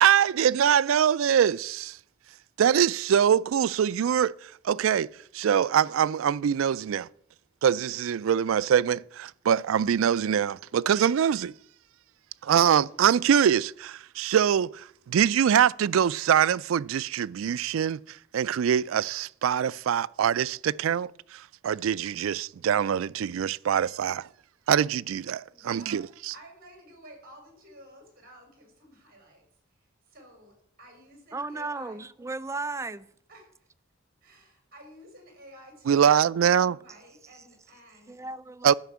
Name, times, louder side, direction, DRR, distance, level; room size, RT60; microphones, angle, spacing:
voice 1, 0.0-2.0 2.6-4.3 4.6-5.1 5.3-7.1 7.6-11.5 12.4-24.3 24.7-26.0 35.9-36.8 38.6-38.7, right 8 dB, 85° right, 0.3 m, -23 dB
voice 2, 25.5-26.0 26.3-32.1 33.3-33.7 34.2-36.3 36.7-38.3, equal, 45° right, 4.7 m, -52 dB
voice 3, 31.3-33.1 38.1-38.7, right 3 dB, 15° right, 0.4 m, -35 dB
11.5 x 5.9 x 8.4 m
head